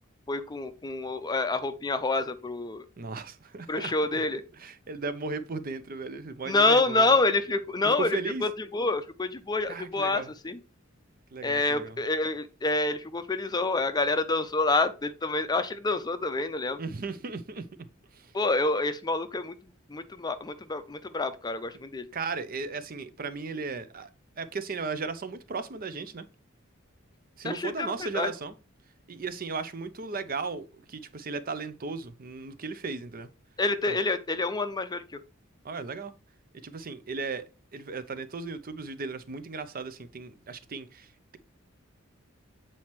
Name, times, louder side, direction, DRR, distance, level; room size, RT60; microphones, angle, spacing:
voice 1, 0.3-2.9 3.7-4.4 6.5-10.6 11.4-16.8 18.3-19.5 19.9-22.1 27.4-28.3 33.6-35.2, left 3 dB, 20° left, 0.5 m, -27 dB
voice 2, 3.0-3.9 4.6-7.1 7.8-8.4 9.7-10.3 11.3-12.0 16.8-17.7 18.1-18.3 22.1-24.1 24.4-26.3 27.4-28.5 29.1-33.3 33.9-34.0 35.6-36.1 36.6-41.1, right 4 dB, 45° right, 0.6 m, -36 dB
7.7 x 4.2 x 3.0 m
head